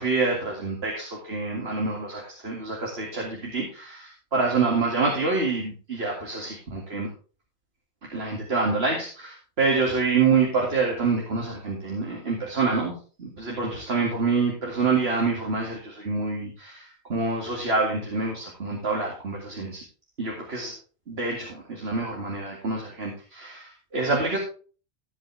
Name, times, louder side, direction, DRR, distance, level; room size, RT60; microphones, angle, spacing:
voice 1, 0.0-7.1 8.1-12.9 13.2-19.8 20.2-20.7 21.1-24.4, right 4 dB, 70° right, -1 dB, 2.6 m, -26 dB
15.0 x 7.7 x 3.4 m, 0.38 s
omnidirectional pair, 1.1 m